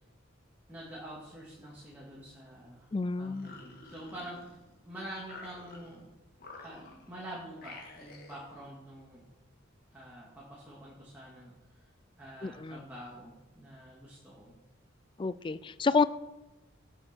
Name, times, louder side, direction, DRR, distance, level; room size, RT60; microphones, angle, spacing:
voice 1, 0.7-2.9 3.2-4.6 4.8-6.1 6.6-9.3 9.9-11.9 12.2-14.6, right 1 dB, 10° right, -6 dB, 2.2 m, -46 dB
voice 2, 2.9-3.5 12.4-12.8 15.2-16.1, left 4 dB, 25° left, 16 dB, 0.3 m, -29 dB
sound 1, 3.2-4.8 5.2-6.0 6.4-7.2 7.6-8.5, left 3 dB, 50° left, 2.1 m, -50 dB
18.5 x 6.4 x 4.5 m, 1.1 s
head